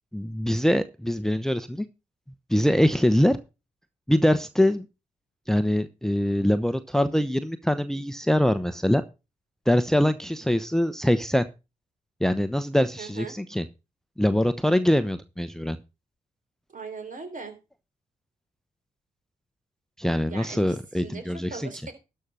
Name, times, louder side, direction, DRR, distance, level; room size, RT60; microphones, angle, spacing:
voice 1, 0.1-1.9 2.5-3.4 4.1-4.9 5.5-9.0 9.7-11.4 12.2-13.7 14.2-15.8 20.0-21.7, equal, ahead, 11 dB, 0.9 m, -23 dB
voice 2, 13.0-13.4 16.7-17.6 20.3-21.9, right 4 dB, 50° right, 7 dB, 3.6 m, -39 dB
12.5 x 5.6 x 6.2 m, 0.29 s
hypercardioid pair, 40°, 18 cm